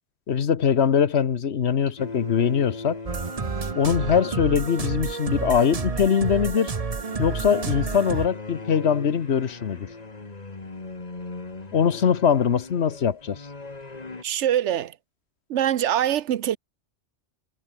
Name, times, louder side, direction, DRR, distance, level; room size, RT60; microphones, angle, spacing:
voice 1, 0.3-3.0 3.7-6.7 7.2-9.9 11.7-13.4, left 7 dB, 65° left, 1.3 m, -22 dB
sound 1, 2.0-5.5 6.9-14.2, left 3 dB, 35° left, 1.9 m, -39 dB
sound 2, 3.1-8.3, right 4 dB, 35° right, 1.1 m, -30 dB
voice 2, 14.2-15.0 15.5-16.6, right 11 dB, 80° right, 1.1 m, -23 dB
omnidirectional pair, 1.2 m